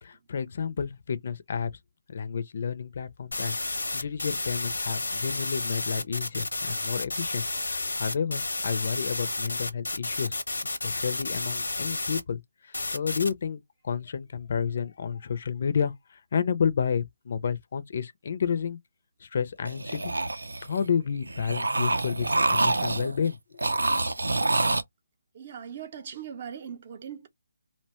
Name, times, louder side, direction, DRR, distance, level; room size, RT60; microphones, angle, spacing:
voice 1, 0.0-1.7 2.1-10.4 10.8-18.8 19.2-20.2 20.7-23.7, left 6 dB, 45° left, 0.5 m, -31 dB
sound 1, 3.3-12.2 12.7-13.3, left 2 dB, 85° left, 0.8 m, -31 dB
sound 2, 19.6-20.8 21.2-23.2 23.6-24.8, right 2 dB, 90° right, 0.5 m, -27 dB
voice 2, 25.3-27.3, right 8 dB, 35° right, 0.6 m, -40 dB
2.8 x 2.2 x 2.8 m
figure-of-eight pair, 160°, 0 cm